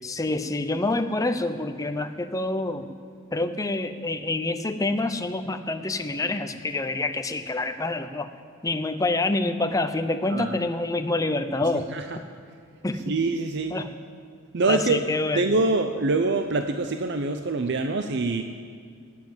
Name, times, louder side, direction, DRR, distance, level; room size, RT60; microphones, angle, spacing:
voice 1, 0.0-2.9 3.3-8.3 8.6-11.9 12.8-13.1 13.7-13.9 14.7-15.5, left 2 dB, 15° left, 9 dB, 0.6 m, -27 dB
voice 2, 13.0-13.8 14.5-15.0 15.3-18.4, right 3 dB, 60° right, 7 dB, 0.6 m, -25 dB
18.5 x 7.5 x 7.3 m, 2.2 s
head